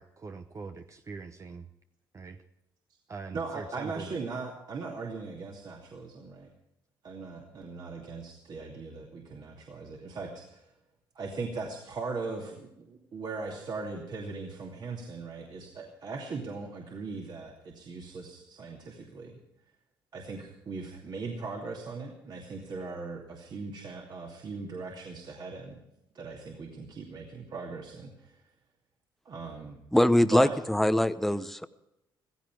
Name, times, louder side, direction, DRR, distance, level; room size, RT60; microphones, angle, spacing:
voice 1, 0.0-1.7 2.1-2.4 3.1-4.1, right 4 dB, 35° right, 7 dB, 0.9 m, -42 dB
voice 2, 3.3-6.5 7.0-10.7 11.1-19.4 20.1-25.8 26.1-28.4 29.2-29.8 30.3-30.6, right 4 dB, 55° right, 0 dB, 2.6 m, -39 dB
voice 3, 29.9-31.7, left 1 dB, 5° left, 12 dB, 0.8 m, -23 dB
15.5 x 15.0 x 4.8 m, 0.86 s
supercardioid pair, 75°, 9 cm